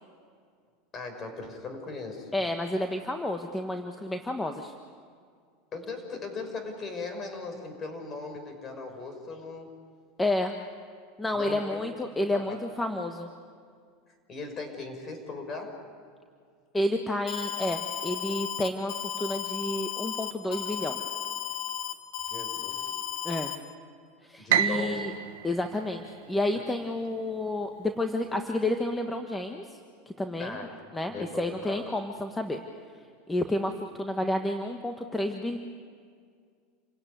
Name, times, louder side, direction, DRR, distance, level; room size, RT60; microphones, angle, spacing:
voice 1, 0.9-2.3 5.7-9.7 11.3-11.8 12.3-12.5 14.3-15.8 22.3-23.0 24.4-25.0 30.4-30.7 31.1-31.8, left 3 dB, 35° left, 5 dB, 5.6 m, -38 dB
voice 2, 2.3-4.7 10.2-10.5 11.2-13.3 16.7-21.0 23.2-23.5 24.2-25.1 25.4-29.8 30.2-30.6 30.9-32.6 33.3-35.6, left 1 dB, 10° left, 5 dB, 1.5 m, -30 dB
Alarm, 17.3-23.6, left 9 dB, 60° left, 2.0 m, -34 dB
Piano, 24.5-26.8, right 10 dB, 75° right, 1.3 m, -29 dB
28.5 x 17.5 x 9.4 m, 2.2 s
hypercardioid pair, 105°, 0 cm